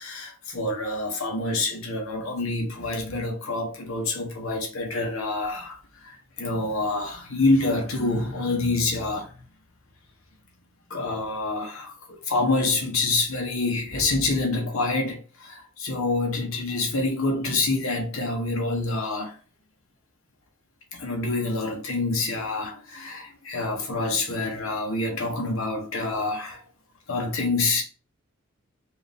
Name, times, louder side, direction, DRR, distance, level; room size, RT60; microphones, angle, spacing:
voice 1, 0.0-9.3 10.9-19.3 20.9-26.6 27.1-27.8, left 2 dB, 75° left, 1.3 m, -27 dB
4.7 x 2.7 x 3.5 m
head